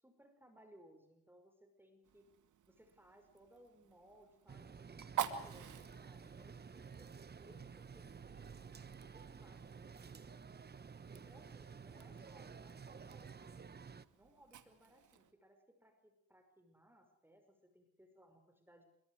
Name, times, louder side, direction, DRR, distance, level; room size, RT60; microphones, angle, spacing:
voice 1, 0.0-2.3 2.7-7.1 7.4-8.6 9.1-10.7 11.1-13.8 14.1-18.8, right 1 dB, 5° right, 5 dB, 5.6 m, -65 dB
Fire, 2.0-15.3, right 9 dB, 80° right, 2.4 m, -50 dB
sound 1, 4.5-14.1, right 5 dB, 35° right, 1.2 m, -53 dB
sound 2, 5.4-11.1 11.4-12.6, right 7 dB, 55° right, 7.0 m, -67 dB
27.5 x 23.5 x 4.9 m, 0.73 s
cardioid pair, 100°, 30 cm